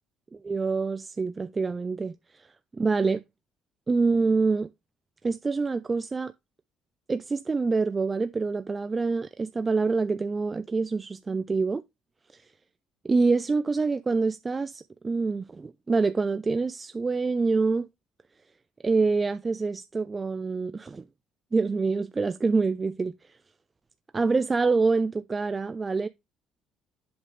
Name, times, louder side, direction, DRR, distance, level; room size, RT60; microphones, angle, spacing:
voice 1, 0.3-2.1 2.8-3.2 3.9-4.7 5.2-6.3 7.1-11.8 13.0-17.9 18.8-21.1 21.5-23.1 24.1-26.1, right 4 dB, 30° right, 0.5 m, -26 dB
7.9 x 5.5 x 3.3 m
supercardioid pair, 70°, 0 cm